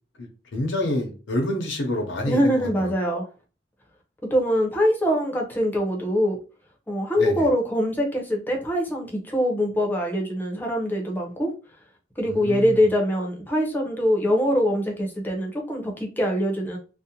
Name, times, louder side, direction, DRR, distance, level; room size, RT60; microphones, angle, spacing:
voice 1, 0.2-3.2 7.2-7.5 12.3-12.8, left 1 dB, 80° left, 1 dB, 0.6 m, -28 dB
voice 2, 2.2-3.2 4.3-6.4 6.9-11.5 12.2-16.8, equal, 10° left, 0 dB, 0.6 m, -23 dB
2.5 x 2.0 x 2.8 m, 0.34 s
head